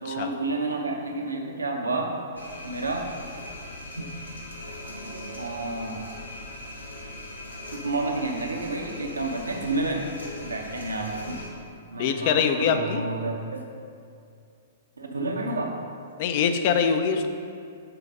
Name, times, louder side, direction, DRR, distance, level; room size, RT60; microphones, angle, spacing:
voice 1, 0.0-2.2 2.6-3.1 4.0-4.1 5.4-6.1 7.7-10.1 10.4-11.4 11.9-13.7 15.0-15.8, right 2 dB, 80° right, 2 dB, 0.8 m, -30 dB
sound 1, 2.4-11.5, left 1 dB, 80° left, 1.0 m, -40 dB
voice 2, 12.0-13.0 16.2-17.3, left 7 dB, 45° left, 7 dB, 0.5 m, -23 dB
6.8 x 4.1 x 5.2 m, 2.4 s
figure-of-eight pair, 110°, 0 cm